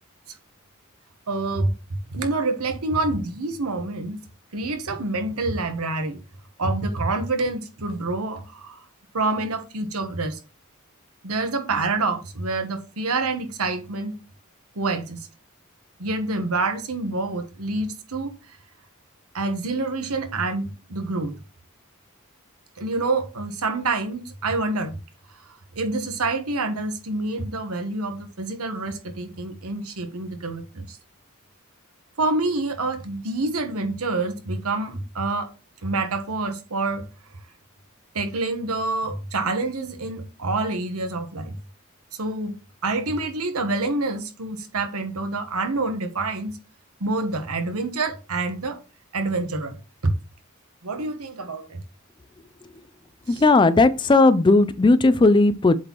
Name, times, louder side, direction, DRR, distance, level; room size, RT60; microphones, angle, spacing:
voice 1, 1.3-1.7 2.1-4.2 4.5-6.2 6.6-8.8 9.1-10.4 11.2-14.1 14.7-15.3 16.0-18.3 19.3-21.3 22.8-25.0 25.5-31.0 32.2-35.5 35.8-37.0 38.1-41.5 42.2-42.6 42.8-46.6 47.0-48.8 49.1-49.8 50.8-51.8 53.3-53.4, right 3 dB, 85° right, 1.2 m, -27 dB
voice 2, 53.3-55.8, left 2 dB, 20° left, 0.3 m, -16 dB
7.7 x 4.2 x 3.0 m
head